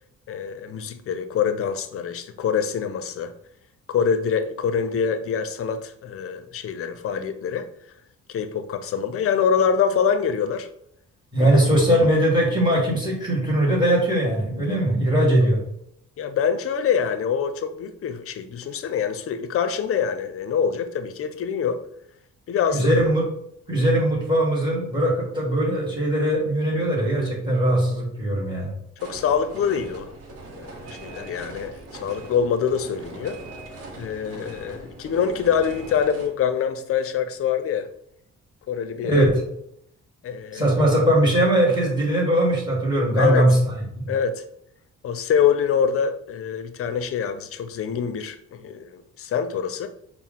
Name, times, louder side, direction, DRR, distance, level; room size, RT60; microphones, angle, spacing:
voice 1, 0.3-3.3 3.9-7.7 8.3-10.7 11.4-11.8 15.4-15.5 16.2-21.8 22.5-22.9 29.0-30.1 30.6-33.4 34.0-37.9 38.7-39.2 40.2-40.7 43.2-43.5 44.1-44.4 45.0-49.9, left 7 dB, 50° left, 0.5 m, -25 dB
voice 2, 11.3-15.6 22.7-23.2 23.7-28.7 39.0-39.3 40.5-43.7 44.0-44.1, right 1 dB, 15° right, 1.3 m, -20 dB
sound 1, 29.0-36.3, right 2 dB, 55° right, 0.9 m, -40 dB
4.4 x 2.0 x 3.7 m
cardioid pair, 90°, 30 cm